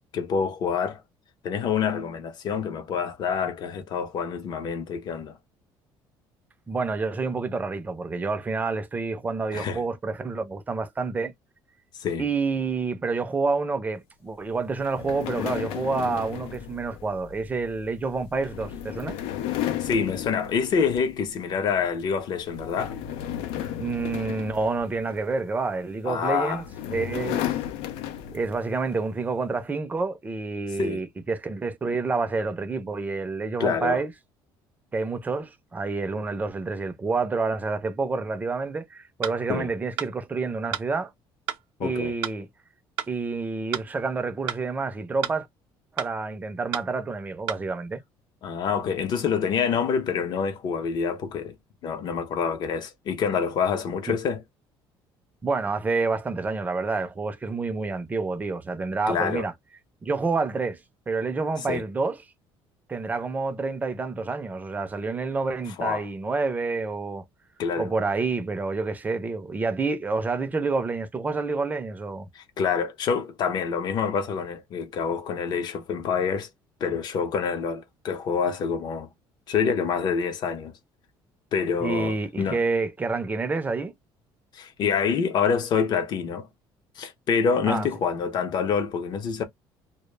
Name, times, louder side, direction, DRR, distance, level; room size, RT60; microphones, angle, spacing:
voice 1, 0.1-1.0 1.4-5.4 9.5-9.8 12.0-12.2 19.8-22.9 26.0-26.6 30.8-31.0 33.6-34.0 39.5-39.7 41.8-42.1 48.4-51.6 51.8-54.4 59.1-59.5 61.7-61.8 65.8-66.0 67.6-67.9 72.3-76.5 76.8-79.1 79.5-80.8 81.5-82.6 84.5-86.5 87.0-89.4, left 6 dB, 50° left, 0.6 m, -26 dB
voice 2, 6.7-11.3 12.2-19.2 23.8-26.6 26.9-27.5 28.3-34.1 34.9-41.1 41.8-42.5 43.1-45.5 45.9-48.0 54.1-54.2 55.4-59.5 60.0-60.8 61.1-62.2 62.9-67.3 67.8-72.3 81.8-84.0 87.6-87.9, right 4 dB, 15° right, 0.4 m, -28 dB
sound 1, 14.8-21.4 21.7-22.0 22.4-25.4 26.2-28.7, left 11 dB, 90° left, 0.4 m, -34 dB
sound 2, 39.2-39.4 40.0-40.1 40.7-40.9 41.5-41.6 42.2-42.4 43.0-43.1 43.7-43.9 44.5-44.6 45.2-45.4 46.0-46.1 46.7-46.9 47.5-47.6, right 11 dB, 75° right, 0.5 m, -31 dB
2.0 x 2.0 x 3.1 m
cardioid pair, 145°, 9 cm